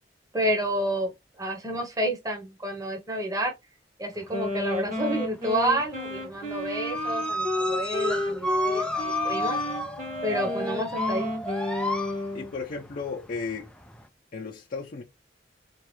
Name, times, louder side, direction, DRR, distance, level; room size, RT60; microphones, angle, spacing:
voice 1, 0.3-3.5 4.0-9.6 10.2-11.3, right 1 dB, 20° right, 1.0 m, -29 dB
sound 1, 4.2-5.2 5.5-14.1, left 1 dB, 5° left, 0.5 m, -32 dB
Wind instrument woodwind instrument, 4.3-12.5, left 1 dB, 45° right, 1.6 m, -31 dB
voice 2, 12.3-13.7 14.3-15.0, left 4 dB, 50° left, 0.6 m, -34 dB
4.5 x 2.4 x 3.2 m
head